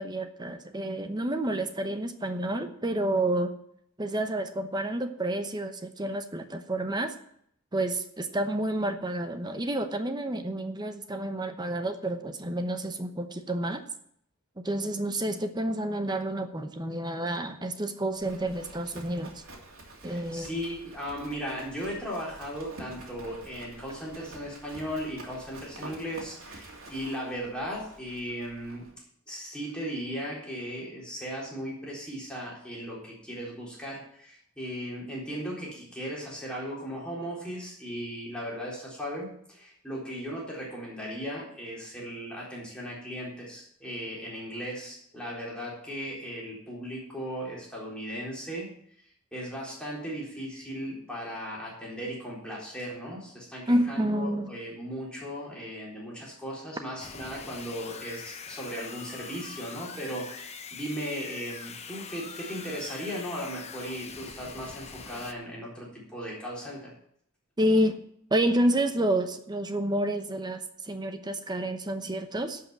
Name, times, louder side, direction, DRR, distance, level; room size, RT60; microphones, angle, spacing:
voice 1, 0.0-3.6 4.0-7.1 7.7-13.8 14.6-19.4 20.0-20.5 53.7-54.5 67.6-68.0 68.3-72.6, right 1 dB, 20° right, 8 dB, 0.9 m, -29 dB
Livestock farm animals working animals, 18.2-28.9, right 2 dB, 70° right, 2.8 m, -48 dB
voice 2, 20.0-28.9 29.3-48.7 49.3-66.9, equal, 5° left, -5 dB, 3.9 m, -37 dB
sound 1, 57.0-65.3, left 6 dB, 30° left, 0.8 m, -43 dB
11.5 x 5.7 x 8.9 m, 0.68 s
head